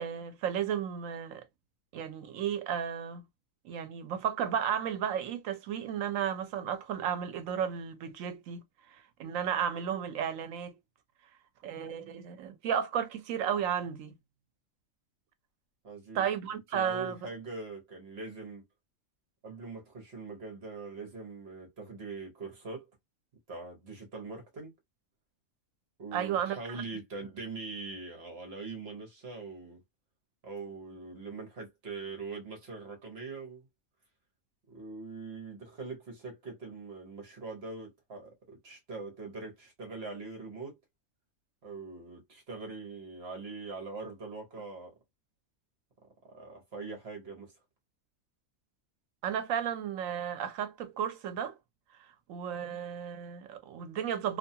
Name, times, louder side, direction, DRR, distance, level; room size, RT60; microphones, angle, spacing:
voice 1, 0.0-1.5 1.9-3.2 3.6-10.8 11.6-14.1 16.1-17.3 26.1-26.8 49.2-51.6 52.3-54.4, right 8 dB, 90° right, 1.0 m, -33 dB
voice 2, 15.8-16.3 16.7-18.6 19.4-22.8 23.5-24.7 26.0-29.8 30.4-33.7 34.7-40.8 41.6-44.9 46.3-47.5, right 3 dB, 55° right, 1.1 m, -42 dB
2.8 x 2.3 x 2.6 m
omnidirectional pair, 1.3 m